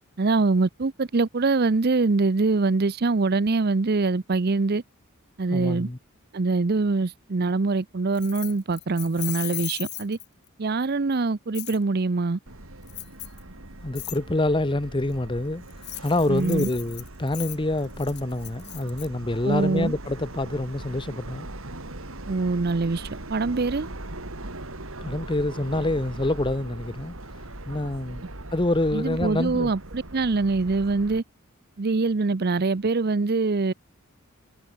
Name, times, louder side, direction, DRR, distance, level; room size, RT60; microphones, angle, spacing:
voice 1, 0.2-4.8 5.4-5.9 6.3-10.2 10.6-12.4 16.3-16.7 19.4-19.9 22.3-23.9 28.9-31.2 31.8-33.7, right 3 dB, 45° right, 0.6 m, -24 dB
voice 2, 5.5-6.0 13.8-15.6 16.0-21.5 25.0-27.2 27.6-28.2 28.5-29.7, left 2 dB, 25° left, 0.9 m, -26 dB
Keys jangling, 8.1-10.5 11.5-11.8 12.9-13.4 13.9-14.2 15.7-19.1, left 17 dB, 50° left, 3.8 m, -37 dB
Subway metro underground, 12.5-31.2, right 1 dB, 70° right, 3.2 m, -40 dB
head